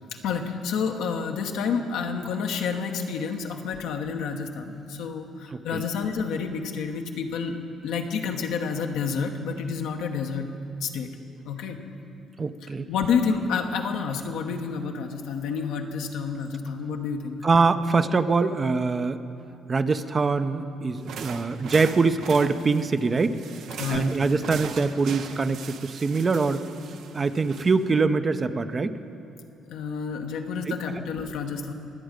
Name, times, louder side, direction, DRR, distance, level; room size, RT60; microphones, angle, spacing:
voice 1, 0.2-7.6 7.8-10.5 10.8-11.1 11.4-11.8 12.6-17.4 23.8-24.1 29.7-31.7, left 6 dB, 80° left, 4 dB, 1.0 m, -29 dB
voice 2, 5.5-5.8 12.4-12.9 17.4-19.2 19.7-23.4 23.9-26.6 27.1-29.0 30.7-31.0, right 4 dB, 35° right, 10 dB, 0.6 m, -24 dB
sound 1, 21.0-28.0, right 6 dB, 70° right, 0.7 m, -40 dB
22.5 x 8.0 x 5.1 m, 2.7 s
supercardioid pair, 70°, 0 cm